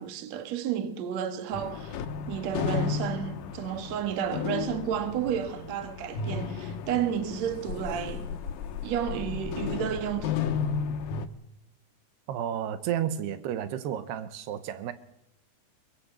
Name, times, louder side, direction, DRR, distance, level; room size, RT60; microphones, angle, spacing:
voice 1, 0.0-2.0 2.3-8.3 8.8-10.4, right 9 dB, 50° right, 2.5 m, -31 dB
sound 1, 1.5-11.3, left 6 dB, 65° left, 2.4 m, -33 dB
voice 2, 12.3-14.9, right 10 dB, 85° right, 3.2 m, -32 dB
23.0 x 20.0 x 8.1 m
omnidirectional pair, 4.7 m